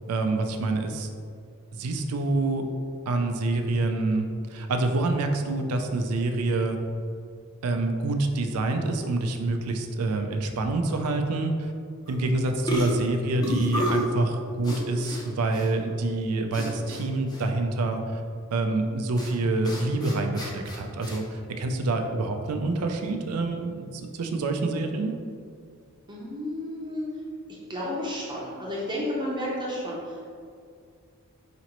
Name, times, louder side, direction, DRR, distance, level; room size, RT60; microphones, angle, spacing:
voice 1, 0.1-1.1 1.7-2.7 3.1-6.8 7.6-11.7 12.1-18.2 18.5-25.1, right 2 dB, 80° right, 5 dB, 0.4 m, -27 dB
sound 1, 12.1-12.3 12.6-14.1 14.6-15.2 15.5-15.7 16.5-17.0 17.3-17.4 19.2-19.3 19.6-21.2, equal, 20° left, 0.6 m, -30 dB
voice 2, 26.1-27.1 27.7-30.3, left 1 dB, 20° right, -5 dB, 0.7 m, -32 dB
4.9 x 3.0 x 3.0 m, 2.3 s
head